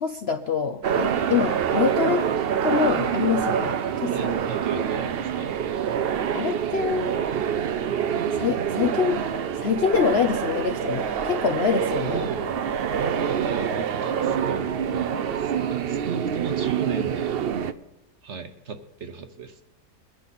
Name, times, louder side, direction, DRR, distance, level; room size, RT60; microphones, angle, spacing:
voice 1, 0.0-2.3 2.6-4.3 6.3-7.1 8.3-9.2 9.6-12.2, left 6 dB, 60° left, 7 dB, 0.7 m, -25 dB
sound 1, 0.8-17.7, right 8 dB, 75° right, 0.5 m, -26 dB
voice 2, 4.0-5.6 12.0-12.6 12.9-17.4 18.2-19.6, right 5 dB, 50° right, 7 dB, 1.1 m, -35 dB
22.0 x 9.9 x 4.2 m, 0.92 s
omnidirectional pair, 1.7 m